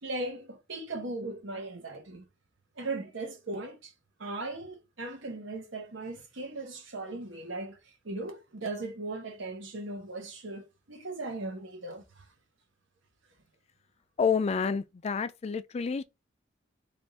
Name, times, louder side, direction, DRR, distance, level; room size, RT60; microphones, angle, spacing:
voice 1, 0.0-2.2 2.8-3.9 4.2-7.8 8.0-12.2, right 2 dB, 75° right, 1.0 m, -38 dB
voice 2, 14.2-16.0, left 6 dB, 35° left, 0.4 m, -29 dB
3.5 x 2.4 x 4.0 m
head